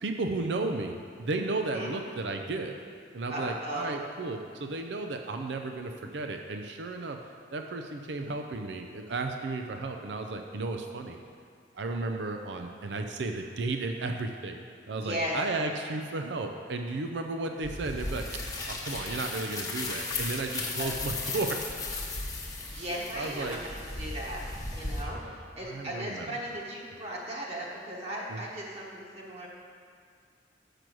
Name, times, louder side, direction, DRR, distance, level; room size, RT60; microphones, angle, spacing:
voice 1, 0.0-2.8 3.1-7.2 7.5-11.2 11.7-14.6 14.9-18.4 18.7-21.6 22.7-22.9 23.1-23.6 25.2-25.3 25.6-26.3 28.3-28.4, right 3 dB, 70° right, 4 dB, 0.5 m, -34 dB
voice 2, 3.3-3.9 15.0-15.4 20.8-20.9 22.7-23.6 24.0-24.4 24.7-29.5, equal, 35° right, -4 dB, 1.2 m, -36 dB
sound 1, 17.6-25.0, left 3 dB, 20° left, 0.9 m, -36 dB
6.7 x 6.1 x 6.1 m, 2.2 s
head